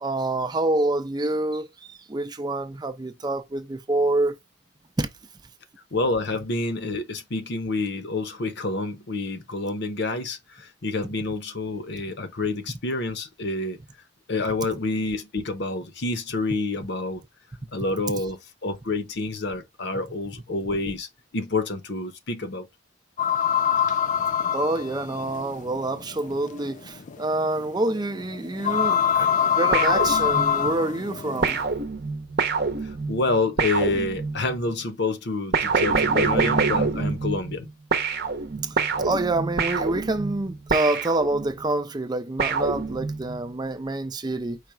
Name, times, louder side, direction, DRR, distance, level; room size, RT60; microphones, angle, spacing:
voice 1, 0.0-4.4 5.0-5.1 24.5-31.6 38.6-44.6, right 2 dB, 20° right, 0.5 m, -27 dB
voice 2, 5.9-13.8 14.3-17.2 17.7-22.7 32.8-37.7, left 3 dB, 55° left, 0.9 m, -28 dB
sound 1, 23.2-31.6, left 8 dB, 35° left, 0.3 m, -25 dB
sound 2, 29.7-30.7 31.4-34.6 35.5-37.6 37.9-41.7 42.4-43.4, right 4 dB, 50° right, 0.8 m, -26 dB
4.9 x 2.3 x 4.4 m
head